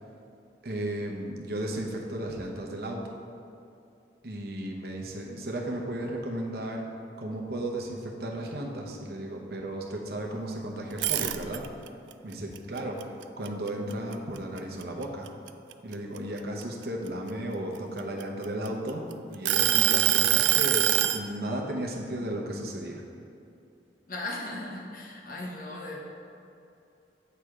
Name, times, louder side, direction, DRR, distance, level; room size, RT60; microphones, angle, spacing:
voice 1, 0.6-3.1 4.2-6.8 7.2-11.7 12.2-15.3 15.8-23.0, right 1 dB, 55° right, 0 dB, 0.8 m, -34 dB
sound 1, 10.9-11.9 12.3-14.1 14.6-14.8 15.3-17.1 17.8-18.9 19.5-21.2, right 13 dB, 85° right, 0.3 m, -24 dB
voice 2, 19.7-20.2 24.1-26.0, left 2 dB, 50° left, -2 dB, 0.9 m, -38 dB
7.8 x 3.3 x 4.8 m, 2.6 s
head